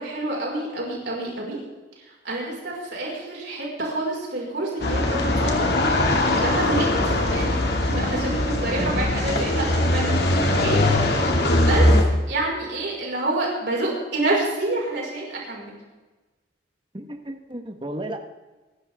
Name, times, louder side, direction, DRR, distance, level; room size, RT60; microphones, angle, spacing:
voice 1, 0.0-1.6 2.2-5.7 6.4-10.8 11.2-12.0 12.3-15.8, right 2 dB, 65° right, -3 dB, 5.4 m, -28 dB
sound 1, 4.8-12.0, left 1 dB, 60° left, 2.5 m, -21 dB
voice 2, 8.8-9.7 16.9-18.2, right 1 dB, 25° right, 5 dB, 1.5 m, -34 dB
25.5 x 12.5 x 3.7 m, 1.2 s
head